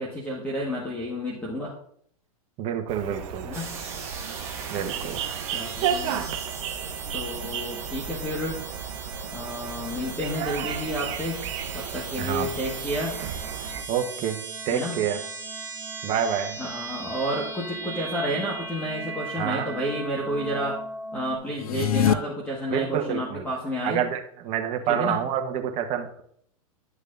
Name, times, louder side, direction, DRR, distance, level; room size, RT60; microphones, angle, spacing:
voice 1, 0.0-1.7 3.4-3.7 5.5-6.3 7.1-8.6 9.3-11.4 11.7-13.2 14.7-15.0 16.6-20.8 21.1-24.0 24.9-25.2, equal, 10° left, -3 dB, 1.6 m, -30 dB
voice 2, 2.6-3.5 4.7-5.2 12.2-12.5 13.9-15.2 16.0-16.6 19.4-19.7 22.7-23.5 23.8-26.2, right 8 dB, 40° right, 5 dB, 1.1 m, -28 dB
sound 1, 2.9-13.8, right 8 dB, 55° right, 0.9 m, -34 dB
sound 2, 3.5-21.4, right 4 dB, 15° right, 1.7 m, -38 dB
sound 3, 21.5-22.1, left 9 dB, 75° left, 0.5 m, -22 dB
10.5 x 6.4 x 2.6 m, 0.65 s
hypercardioid pair, 120°, 19 cm